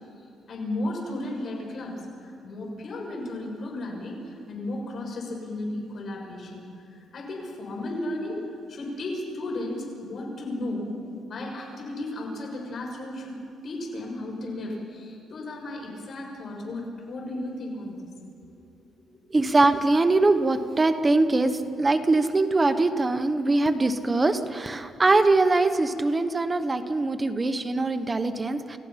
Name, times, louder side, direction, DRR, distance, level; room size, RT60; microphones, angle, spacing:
voice 1, 0.5-8.4 8.7-10.9 11.2-13.3 13.6-18.1 18.4-18.5, left 1 dB, 50° left, 0 dB, 6.2 m, -34 dB
voice 2, 19.3-28.8, right 2 dB, 20° right, 9 dB, 1.0 m, -22 dB
29.5 x 16.0 x 5.8 m, 2.6 s
cardioid pair, 110°, 0 cm